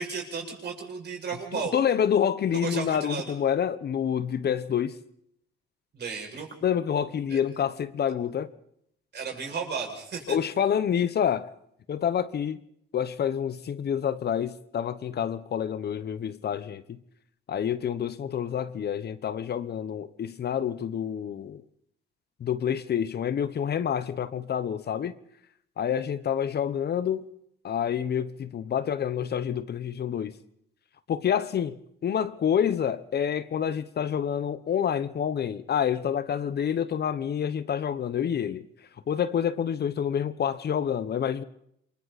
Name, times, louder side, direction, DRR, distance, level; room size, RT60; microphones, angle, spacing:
voice 1, 0.0-1.7 2.5-3.3 5.9-6.5 7.3-7.4 9.1-10.4, right 5 dB, 60° right, 6.9 m, -34 dB
voice 2, 1.5-5.0 6.6-8.5 10.3-11.5 11.9-12.6 12.9-17.0 17.5-21.6 22.4-25.1 25.8-27.3 27.6-30.4 31.1-31.8 32.0-38.6 39.1-41.4, left 8 dB, 55° left, 1.1 m, -28 dB
28.0 x 22.5 x 4.3 m
cardioid pair, 90°, 20 cm